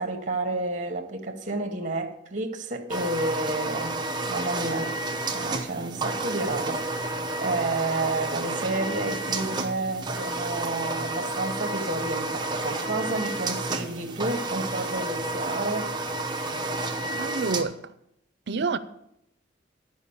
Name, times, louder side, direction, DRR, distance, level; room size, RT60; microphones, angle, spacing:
voice 1, 0.0-4.0 4.3-4.9 5.3-15.9, right 2 dB, 40° right, 1.2 m, -30 dB
sound 1, 2.9-17.6, right 2 dB, 25° right, 0.8 m, -30 dB
voice 2, 17.2-17.8 18.5-18.8, right 4 dB, 60° right, 0.6 m, -27 dB
11.5 x 5.2 x 7.1 m
head